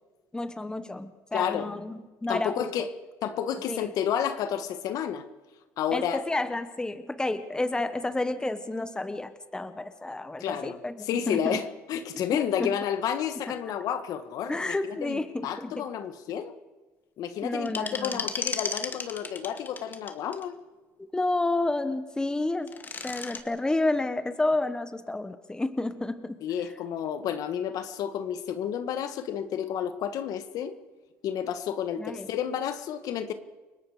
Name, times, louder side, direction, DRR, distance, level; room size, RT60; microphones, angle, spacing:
voice 1, 0.3-2.9 3.7-3.9 5.9-11.6 12.1-12.2 12.6-12.7 13.5-13.6 14.5-15.9 17.4-18.3 21.0-22.7 23.0-26.4 32.0-32.3, left 2 dB, 10° left, 10 dB, 1.4 m, -30 dB
voice 2, 1.3-1.7 2.3-2.9 3.2-5.2 5.8-6.2 10.4-10.8 11.1-11.6 11.9-16.5 17.2-20.5 26.4-30.7 31.2-33.3, left 9 dB, 65° left, 10 dB, 1.7 m, -31 dB
sound 1, 17.6-20.4 22.5-23.4, left 4 dB, 30° left, 2.0 m, -34 dB
29.5 x 18.5 x 5.1 m, 1.2 s
cardioid pair, 100°, 7 cm